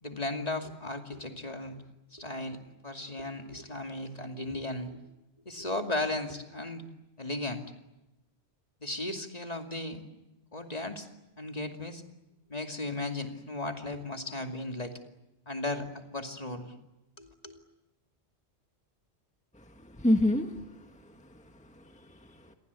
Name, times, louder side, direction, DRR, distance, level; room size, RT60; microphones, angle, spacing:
voice 1, 0.0-1.8 2.1-5.0 5.4-6.9 7.2-7.6 8.8-10.0 10.5-11.1 11.4-12.0 12.5-15.0 15.5-16.7 17.2-17.6, left 2 dB, 35° left, 5 dB, 2.7 m, -36 dB
voice 2, 19.5-21.5 21.8-22.5, left 1 dB, 5° left, 5 dB, 1.6 m, -30 dB
29.0 x 23.5 x 8.3 m, 0.96 s
omnidirectional pair, 1.1 m